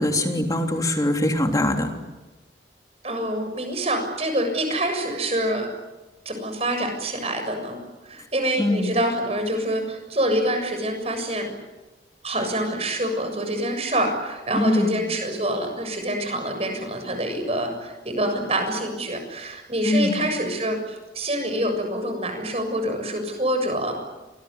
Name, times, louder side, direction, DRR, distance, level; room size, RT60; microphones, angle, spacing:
voice 1, 0.0-1.9 8.6-8.9 14.5-14.9 19.8-20.2, left 1 dB, 20° left, 3 dB, 3.3 m, -22 dB
voice 2, 3.0-5.7 6.3-11.5 12.2-24.0, right 1 dB, 35° right, 6 dB, 7.0 m, -26 dB
27.0 x 21.0 x 9.9 m, 1.1 s
head